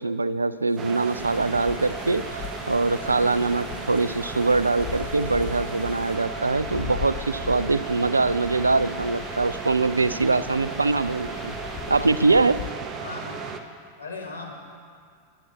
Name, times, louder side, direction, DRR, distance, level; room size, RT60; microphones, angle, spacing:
voice 1, 0.0-11.6 11.9-12.6, right 3 dB, 80° right, 16 dB, 0.4 m, -23 dB
sound 1, 0.7-6.2, left 5 dB, 65° left, 2.0 m, -53 dB
sound 2, 0.8-13.6, right 5 dB, 30° right, 0.9 m, -35 dB
sound 3, 1.2-12.7, left 13 dB, 35° left, 0.5 m, -39 dB
voice 2, 13.0-13.4 14.0-14.5, left 3 dB, 85° left, -3 dB, 2.3 m, -37 dB
21.5 x 9.3 x 4.1 m, 2.1 s
figure-of-eight pair, 90°, 0 cm